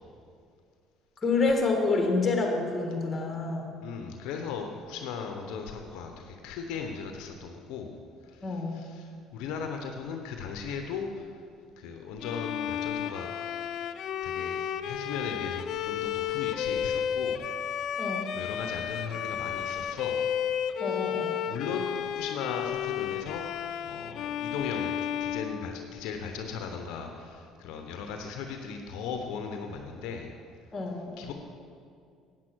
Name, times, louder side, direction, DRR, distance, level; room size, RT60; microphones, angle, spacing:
voice 1, 1.2-3.7 8.4-8.8 18.0-18.3 20.8-21.3 30.7-31.3, left 3 dB, 30° left, 3 dB, 1.9 m, -28 dB
voice 2, 3.8-11.3 11.8-13.3 14.2-17.5 18.3-20.2 21.5-24.9 25.2-30.3 31.2-31.3, left 6 dB, 80° left, 4 dB, 0.8 m, -37 dB
Bowed string instrument, 12.2-26.3, left 9 dB, 60° left, 0.4 m, -32 dB
8.9 x 7.5 x 6.1 m, 2.3 s
supercardioid pair, 90°, 0 cm